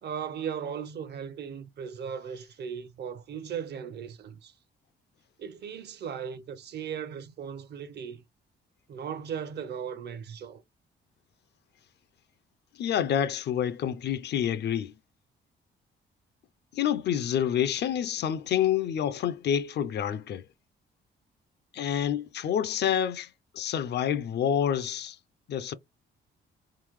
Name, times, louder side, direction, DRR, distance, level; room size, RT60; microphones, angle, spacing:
voice 1, 0.0-4.5 5.4-8.2 8.9-10.6, right 7 dB, 55° right, 0.7 m, -37 dB
voice 2, 12.8-14.9 16.7-20.4 21.7-23.3 23.5-25.2 25.5-25.7, left 9 dB, 60° left, 0.5 m, -28 dB
4.1 x 3.8 x 3.1 m
cardioid pair, 90°, 20 cm